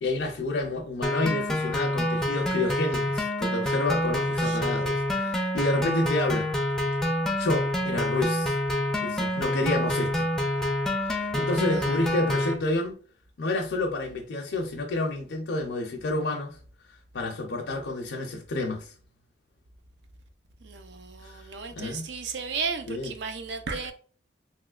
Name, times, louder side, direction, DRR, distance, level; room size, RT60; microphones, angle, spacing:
voice 1, 0.0-6.5 7.4-8.5 9.0-10.3 11.0-13.0 13.4-16.6 17.1-18.9 21.2-21.5 21.7-22.1 22.9-23.1, left 2 dB, 85° left, 0.5 m, -29 dB
sound 1, 1.0-12.5, left 1 dB, 5° left, 0.4 m, -27 dB
voice 2, 20.6-23.9, right 5 dB, 75° right, 0.5 m, -34 dB
3.0 x 2.9 x 2.3 m
head